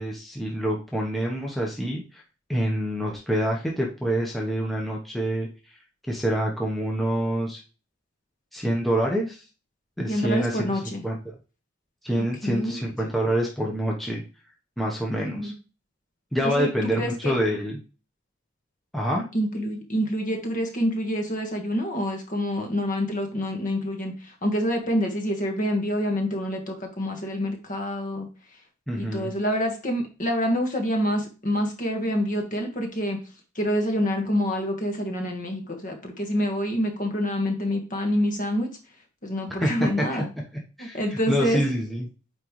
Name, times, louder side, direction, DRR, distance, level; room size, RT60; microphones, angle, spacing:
voice 1, 0.0-2.2 2.5-5.5 6.1-7.6 8.5-9.4 10.0-11.3 12.0-14.2 14.8-15.5 16.3-17.8 18.9-19.2 28.9-29.3 39.6-40.2 40.8-42.1, equal, ahead, -2 dB, 0.9 m, -26 dB
voice 2, 10.1-11.0 12.4-12.9 15.3-15.5 16.4-17.3 19.3-28.3 29.0-33.2 33.5-38.7 39.2-40.3 40.8-41.6, equal, 40° left, 3 dB, 1.5 m, -27 dB
8.9 x 3.8 x 3.1 m, 0.33 s
head